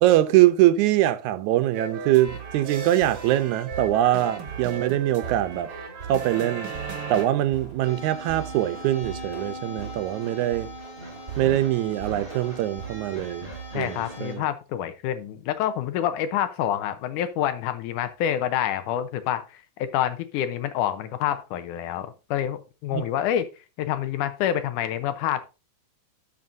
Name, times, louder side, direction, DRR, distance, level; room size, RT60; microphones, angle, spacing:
voice 1, 0.0-5.7 6.1-6.7 7.1-10.7 11.4-14.4 22.9-23.0, right 14 dB, 80° right, 2.0 m, -23 dB
sound 1, 1.7-7.3, right 4 dB, 50° right, 2.1 m, -36 dB
sound 2, 2.3-14.3, right 6 dB, 25° right, 4.6 m, -41 dB
sound 3, 7.8-14.3, left 1 dB, 40° left, 5.5 m, -40 dB
voice 2, 13.7-23.5 23.8-25.4, left 10 dB, 85° left, 2.3 m, -27 dB
12.5 x 5.9 x 2.6 m
omnidirectional pair, 3.5 m